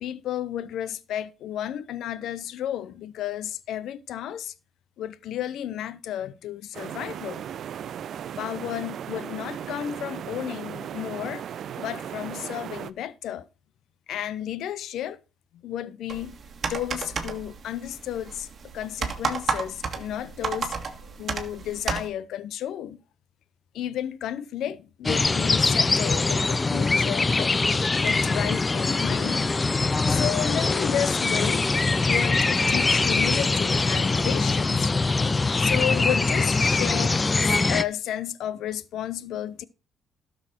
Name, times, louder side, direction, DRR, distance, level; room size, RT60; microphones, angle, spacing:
voice 1, 0.0-4.5 5.0-7.4 8.4-11.4 11.8-13.5 14.1-15.2 15.6-16.4 16.6-18.5 18.7-20.7 21.2-23.0 23.7-27.6 28.0-29.5 30.1-31.7 32.0-34.9 35.6-39.6, left 11 dB, 80° left, 0.6 m, -32 dB
sound 1, 6.7-12.9, right 9 dB, 65° right, 0.5 m, -36 dB
sound 2, 16.1-22.1, right 5 dB, 45° right, 1.7 m, -32 dB
sound 3, 25.0-37.8, left 3 dB, 25° left, 0.4 m, -23 dB
12.5 x 6.4 x 4.4 m
cardioid pair, 90°, 0 cm